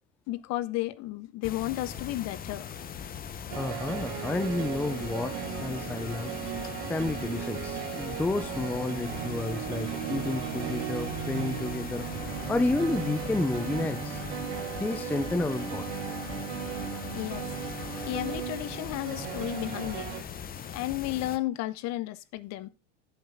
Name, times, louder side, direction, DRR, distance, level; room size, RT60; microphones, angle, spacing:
voice 1, 0.3-2.7 17.1-17.4 18.0-20.1 20.7-22.7, left 16 dB, 50° left, 0.9 m, -33 dB
sound 1, 1.4-21.4, left 7 dB, 25° left, 0.9 m, -40 dB
sound 2, 3.5-20.2, right 9 dB, 75° right, 2.3 m, -36 dB
voice 2, 3.6-6.3 6.9-12.1 12.5-14.2 14.8-15.9, left 2 dB, 5° left, 0.4 m, -31 dB
11.0 x 7.9 x 3.7 m
supercardioid pair, 120°, 35 cm